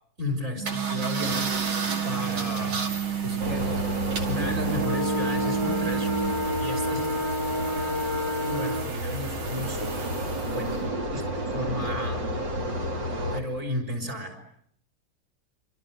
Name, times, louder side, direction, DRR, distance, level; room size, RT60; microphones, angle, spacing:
voice 1, 0.2-1.5 2.0-2.8 3.2-3.8 4.3-6.1 6.6-7.0 7.5-7.6 8.4-9.8 10.4-10.8 11.1-12.2 13.2-14.6, left 1 dB, 35° right, 7 dB, 5.7 m, -33 dB
sound 1, 0.5-6.3, right 10 dB, 20° right, 3.2 m, -31 dB
sound 2, 0.7-10.8, right 4 dB, 90° right, 3.4 m, -35 dB
sound 3, 3.4-13.4, equal, 65° right, 3.3 m, -29 dB
28.5 x 26.0 x 7.9 m, 0.71 s
omnidirectional pair, 2.2 m